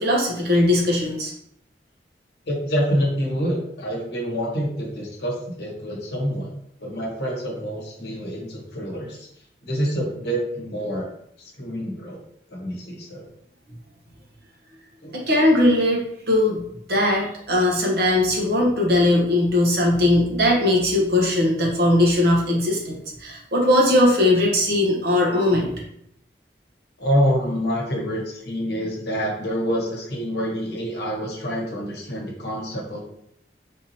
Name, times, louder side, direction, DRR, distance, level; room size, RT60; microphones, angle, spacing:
voice 1, 0.0-1.3 15.1-16.0 16.3-16.6 16.9-25.7, left 1 dB, 60° right, -2 dB, 0.9 m, -19 dB
voice 2, 2.5-6.5 6.8-9.3 9.6-11.1 11.6-12.2 12.5-13.3 15.0-15.1 27.0-33.0, equal, 70° left, -1 dB, 1.0 m, -26 dB
3.6 x 2.8 x 2.7 m, 0.72 s
head